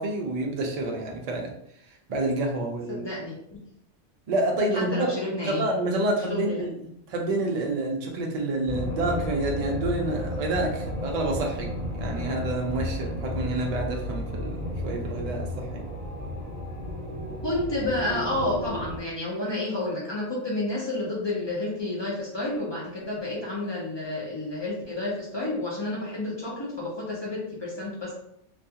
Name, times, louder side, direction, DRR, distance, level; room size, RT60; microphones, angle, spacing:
voice 1, 0.0-1.5 2.1-3.1 4.3-5.1 5.4-15.9, right 2 dB, 60° right, 0 dB, 0.4 m, -28 dB
voice 2, 2.9-3.6 4.7-5.7 6.3-6.6 17.4-28.1, left 2 dB, 45° left, -5 dB, 0.3 m, -30 dB
sound 1, 8.7-19.0, left 1 dB, 20° right, 1.0 m, -33 dB
2.3 x 2.3 x 2.7 m, 0.74 s
omnidirectional pair, 1.3 m